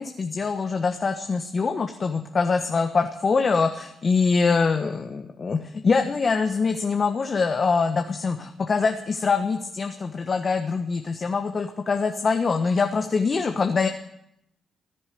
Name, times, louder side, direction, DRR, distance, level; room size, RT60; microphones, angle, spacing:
voice 1, 0.0-13.9, left 4 dB, 45° left, 5 dB, 1.3 m, -24 dB
15.5 x 9.9 x 9.3 m, 0.79 s
hypercardioid pair, 50°, 0 cm